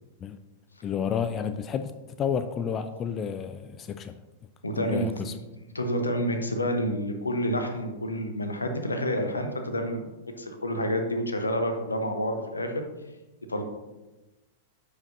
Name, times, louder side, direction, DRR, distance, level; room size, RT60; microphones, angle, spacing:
voice 1, 0.8-1.9 2.2-4.1 4.8-5.3, left 7 dB, 25° left, 10 dB, 0.4 m, -30 dB
voice 2, 4.6-5.4 5.7-10.0 10.4-12.8 13.5-13.6, equal, 80° left, 5 dB, 0.9 m, -29 dB
10.5 x 5.0 x 2.6 m, 1.1 s
figure-of-eight pair, 95°, 0 cm